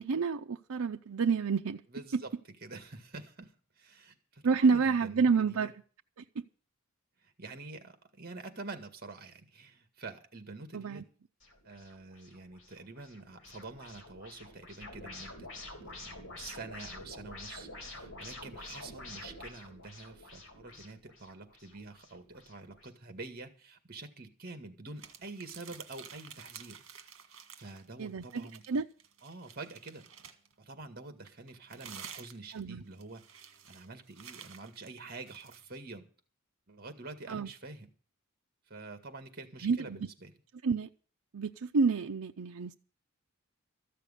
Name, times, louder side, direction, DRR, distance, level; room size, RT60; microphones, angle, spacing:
voice 1, 0.0-1.8 2.1-2.2 4.4-5.7 6.2-6.4 10.7-11.0 28.0-28.9 32.5-32.8 37.3-37.5 39.6-40.1 40.6-40.9 41.3-42.7, right 5 dB, 85° right, 0.6 m, -29 dB
voice 2, 1.9-2.3 2.6-5.7 7.2-11.0 11.6-15.5 15.8-26.8 27.6-28.7 29.2-30.1 30.6-36.1 36.7-37.9 38.7-40.3, right 3 dB, 45° right, 2.0 m, -47 dB
sound 1, 11.4-22.9, left 2 dB, 60° left, 3.4 m, -48 dB
sound 2, 25.0-27.9 28.2-30.5 31.2-35.6, right 8 dB, 60° right, 1.8 m, -51 dB
14.0 x 6.7 x 9.9 m
head